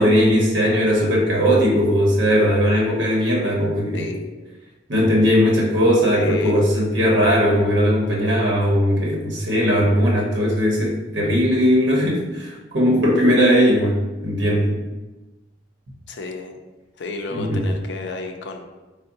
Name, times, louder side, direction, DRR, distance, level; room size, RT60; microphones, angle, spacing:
voice 1, 0.0-4.1 4.9-14.7 17.3-17.6, equal, 75° right, -3 dB, 0.8 m, -18 dB
voice 2, 3.9-4.3 6.1-6.6 16.1-16.5 17.0-18.6, left 3 dB, 65° left, 4 dB, 0.4 m, -32 dB
3.6 x 2.0 x 3.9 m, 1.1 s
head